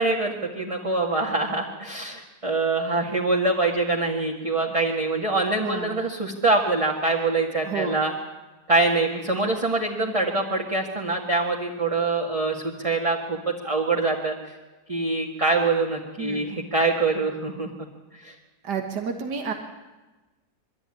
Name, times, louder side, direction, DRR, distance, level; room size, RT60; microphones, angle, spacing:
voice 1, 0.0-8.1 8.7-14.3 14.9-17.7 18.2-18.3, right 3 dB, 20° right, -1 dB, 1.7 m, -24 dB
voice 2, 5.6-6.0 7.7-8.0 16.2-16.5 18.6-19.5, right 6 dB, 85° right, 4 dB, 2.1 m, -30 dB
23.0 x 13.0 x 9.8 m, 1.2 s
omnidirectional pair, 1.7 m